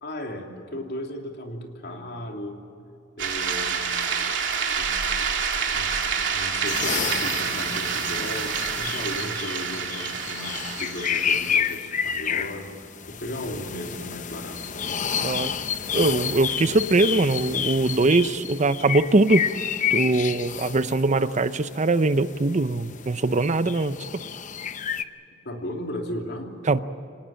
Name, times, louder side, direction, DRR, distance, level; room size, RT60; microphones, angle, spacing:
voice 1, 0.0-2.6 3.2-4.1 4.8-5.0 5.7-5.9 6.3-14.6 25.4-26.5, left 1 dB, 60° left, 2 dB, 3.0 m, -35 dB
sound 1, 3.2-11.7, right 6 dB, 75° right, 3.0 m, -28 dB
sound 2, 6.6-25.0, left 8 dB, 40° left, 0.8 m, -30 dB
voice 2, 15.2-15.5 15.9-19.5 19.9-24.0 26.7-26.8, right 2 dB, 40° right, 13 dB, 0.7 m, -22 dB
25.5 x 19.0 x 8.9 m, 2.7 s
head